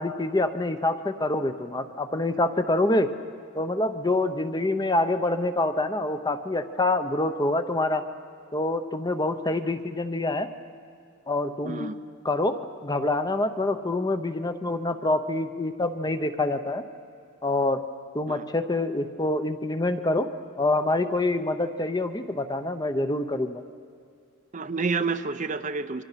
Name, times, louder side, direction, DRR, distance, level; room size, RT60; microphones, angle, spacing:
voice 1, 0.0-3.1 3.5-8.0 8.5-10.5 11.3-11.9 12.2-16.8 17.4-17.8 18.1-20.3 20.6-23.6, left 2 dB, 20° left, 9 dB, 0.8 m, -26 dB
voice 2, 11.6-11.9 18.3-18.4 24.5-26.0, right 4 dB, 35° right, 10 dB, 0.6 m, -29 dB
28.5 x 24.0 x 5.8 m, 2.4 s
head